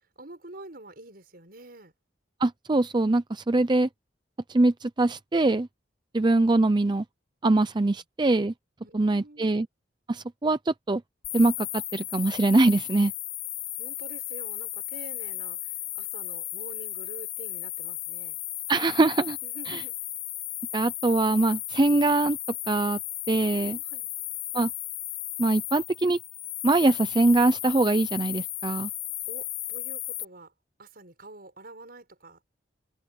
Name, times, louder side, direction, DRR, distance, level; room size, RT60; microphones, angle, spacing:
voice 1, 0.2-1.9 7.9-8.0 8.8-9.6 13.8-18.4 19.4-19.9 23.4-24.1 29.3-30.5 30.8-32.4, right 2 dB, 55° right, 6.4 m, -47 dB
voice 2, 2.4-3.9 4.5-5.7 6.1-7.0 7.4-8.5 8.9-9.7 10.1-11.0 11.3-13.1 18.7-19.4 19.7-19.8 20.7-22.4 22.7-23.0 23.3-23.8 24.5-24.7 25.4-26.2 26.6-28.9, right 2 dB, 25° right, 0.5 m, -23 dB
sound 1, 11.2-30.2, left 15 dB, 75° left, 2.5 m, -35 dB
head